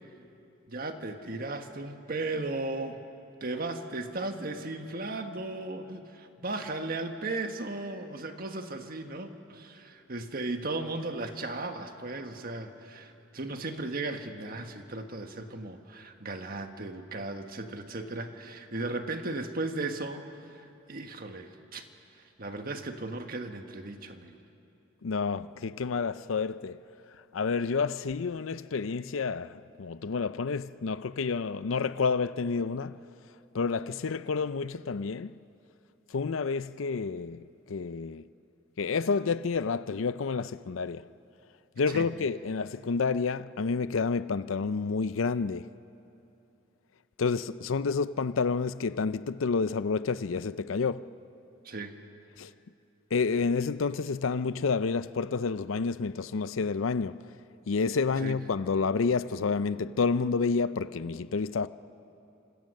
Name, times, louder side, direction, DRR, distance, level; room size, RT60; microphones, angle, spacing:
voice 1, 0.7-3.0 3.4-21.8 22.4-24.4 41.9-42.1 51.6-51.9 58.2-58.4, right 2 dB, 50° right, 1.5 m, -36 dB
voice 2, 25.0-26.8 27.3-33.0 33.5-35.3 36.1-38.2 38.8-41.0 41.8-45.7 47.2-51.1 52.4-52.5 53.1-57.2 57.7-61.7, left 4 dB, 85° left, 0.5 m, -29 dB
29.0 x 26.0 x 6.6 m
head